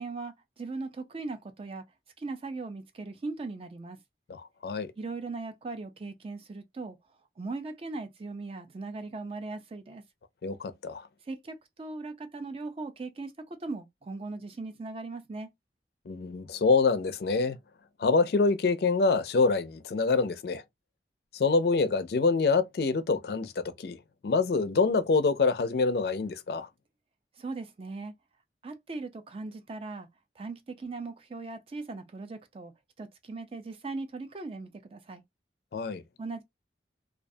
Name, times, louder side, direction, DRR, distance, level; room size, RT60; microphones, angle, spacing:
voice 1, 0.0-1.8 2.2-4.0 5.0-7.0 7.4-10.0 11.2-15.5 27.4-28.1 28.6-30.1 30.4-32.7 33.0-35.2 36.2-36.4, right 3 dB, 30° right, 0.3 m, -39 dB
voice 2, 4.3-4.9 10.4-11.1 16.1-17.6 18.0-20.6 21.3-24.0 24.2-26.7 35.7-36.0, left 4 dB, 60° left, 0.4 m, -26 dB
2.3 x 2.1 x 2.6 m
head